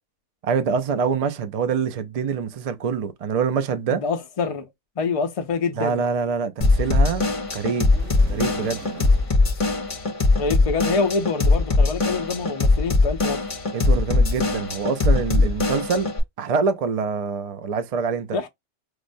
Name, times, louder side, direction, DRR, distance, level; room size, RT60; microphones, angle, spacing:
voice 1, 0.4-4.0 5.8-7.2 7.5-7.9 8.3-8.8 13.7-16.1 16.4-18.5, right 6 dB, 60° right, 0.4 m, -25 dB
voice 2, 3.9-4.7 5.0-6.0 10.4-13.4 18.3-18.5, left 4 dB, 65° left, 0.3 m, -26 dB
Drum kit / Drum, 6.6-16.2, left 3 dB, 35° left, 0.7 m, -21 dB
sound 1, 7.9-9.4, right 7 dB, 90° right, 1.1 m, -40 dB
4.8 x 2.1 x 2.5 m
omnidirectional pair, 1.2 m